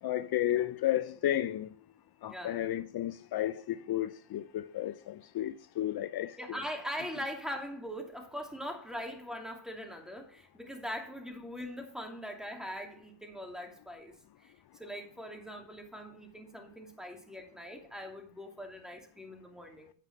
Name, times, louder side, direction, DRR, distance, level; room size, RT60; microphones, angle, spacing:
voice 1, 0.0-1.7 2.2-6.4, left 13 dB, 60° left, 0.6 m, -32 dB
voice 2, 2.3-2.6 6.4-14.1 14.4-14.5 14.8-19.9, equal, ahead, 2.6 m, -41 dB
9.2 x 5.6 x 6.0 m
cardioid pair, 80°, 42 cm